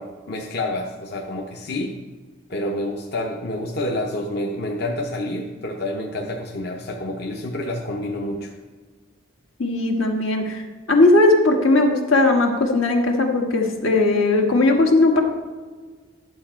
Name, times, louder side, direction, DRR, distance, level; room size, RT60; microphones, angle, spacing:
voice 1, 0.0-2.0 2.5-8.5, left 1 dB, 50° left, 1 dB, 0.7 m, -28 dB
voice 2, 9.6-10.6 10.9-15.2, left 2 dB, 75° left, 1 dB, 1.5 m, -18 dB
11.0 x 7.3 x 4.4 m, 1.4 s
head